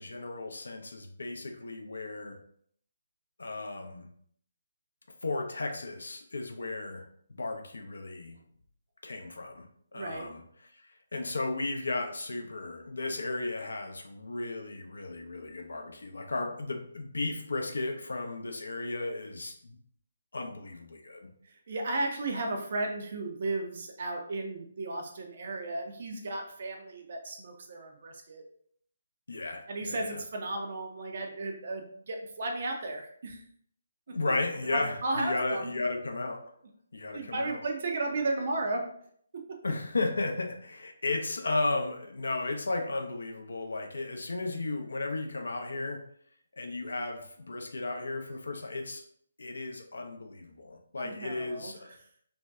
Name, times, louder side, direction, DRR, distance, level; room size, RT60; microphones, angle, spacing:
voice 1, 0.0-2.4 3.4-4.1 5.2-7.0 7.3-8.4 9.0-10.4 11.1-19.8 20.3-21.2 29.3-30.2 34.1-36.4 36.9-37.6 39.6-46.0 46.6-49.0 49.4-51.9, left 2 dB, 70° left, 3 dB, 0.4 m, -34 dB
voice 2, 9.9-10.3 21.4-28.4 29.7-33.4 34.1-34.2 34.7-35.7 37.1-38.8 51.0-52.0, right 2 dB, 50° right, 2 dB, 0.4 m, -34 dB
2.6 x 2.1 x 2.2 m, 0.63 s
figure-of-eight pair, 140°, 0 cm